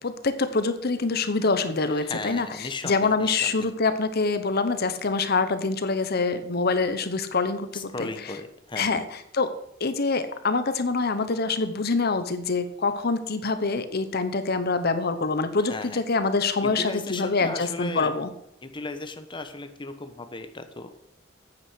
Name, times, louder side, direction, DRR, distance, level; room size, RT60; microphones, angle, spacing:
voice 1, 0.0-8.3 8.8-9.5 9.8-18.3, left 4 dB, 55° left, 11 dB, 0.9 m, -25 dB
voice 2, 2.0-3.7 7.7-9.0 15.7-16.0 16.6-18.1 18.6-21.0, left 3 dB, 25° left, 8 dB, 1.1 m, -36 dB
9.3 x 8.6 x 6.3 m, 0.80 s
head